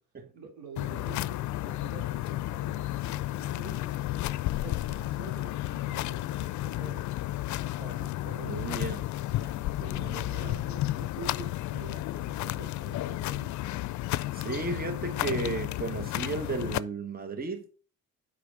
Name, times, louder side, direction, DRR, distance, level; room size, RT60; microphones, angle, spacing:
voice 1, 0.3-4.3 4.6-7.0 7.6-8.8 9.3-13.5, right 5 dB, 85° right, 3.2 m, -47 dB
sound 1, 0.8-16.8, left 15 dB, 70° left, 0.5 m, -32 dB
voice 2, 8.4-9.0 9.9-10.6 14.3-17.7, right 4 dB, 30° right, 1.1 m, -34 dB
8.5 x 5.0 x 5.0 m
cardioid pair, 90°, 30 cm